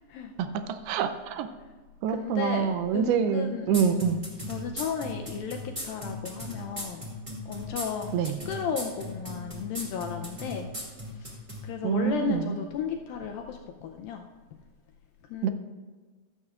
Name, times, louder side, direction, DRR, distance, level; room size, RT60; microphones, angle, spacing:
voice 1, 0.4-1.5 2.0-4.2 8.1-8.4 11.8-12.6 15.4-15.5, right 7 dB, 80° right, 9 dB, 2.4 m, -26 dB
voice 2, 2.1-3.8 4.5-5.6 5.8-7.1 7.5-10.7 11.2-14.3 15.3-15.5, left 7 dB, 80° left, 3 dB, 2.1 m, -34 dB
sound 1, 3.7-11.6, equal, 25° right, 0.9 m, -37 dB
14.5 x 12.0 x 2.4 m, 1.4 s
omnidirectional pair, 4.6 m